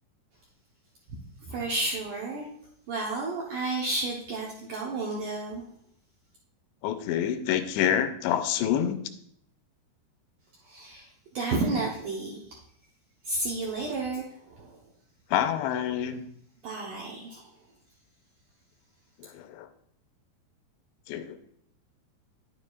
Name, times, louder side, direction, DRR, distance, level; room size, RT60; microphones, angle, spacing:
voice 1, 1.4-2.5 2.9-5.6 10.6-11.1 11.3-12.6 13.2-14.8 16.6-17.5, right 2 dB, 75° right, -3 dB, 1.9 m, -31 dB
voice 2, 6.8-9.0 15.3-16.3 19.2-19.7 21.1-21.4, left 10 dB, 90° left, 9 dB, 2.8 m, -27 dB
10.0 x 9.2 x 2.4 m, 0.69 s
omnidirectional pair, 4.9 m